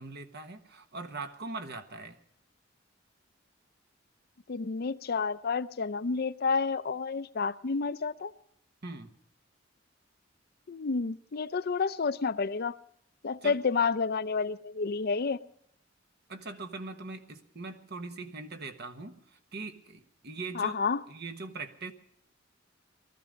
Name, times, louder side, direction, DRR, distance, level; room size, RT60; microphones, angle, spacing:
voice 1, 0.0-2.2 8.8-9.1 13.4-13.6 16.3-20.8 21.1-21.9, right 3 dB, 60° right, 7 dB, 1.3 m, -41 dB
voice 2, 4.5-8.3 10.7-12.7 13.2-15.4 20.5-21.0, left 5 dB, 55° left, 14 dB, 0.5 m, -30 dB
20.0 x 13.5 x 5.1 m, 0.71 s
head